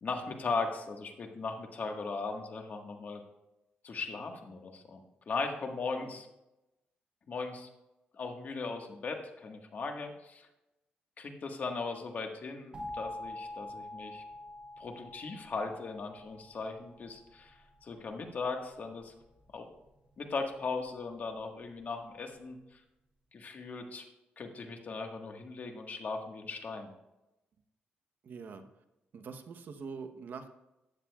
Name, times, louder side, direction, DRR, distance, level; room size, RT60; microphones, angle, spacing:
voice 1, 0.0-3.2 3.8-6.3 7.3-7.7 8.1-10.5 11.2-14.2 14.8-19.1 19.5-19.7 20.2-22.8 23.3-24.0 24.4-26.9, left 4 dB, 50° left, 3 dB, 1.5 m, -38 dB
voice 2, 5.9-6.2 28.2-28.7 29.1-30.5, right 5 dB, 60° right, 7 dB, 1.0 m, -44 dB
sound 1, 12.7-17.5, left 1 dB, 25° right, 2.2 m, -45 dB
14.5 x 10.0 x 2.4 m, 0.95 s
cardioid pair, 100°, 4 cm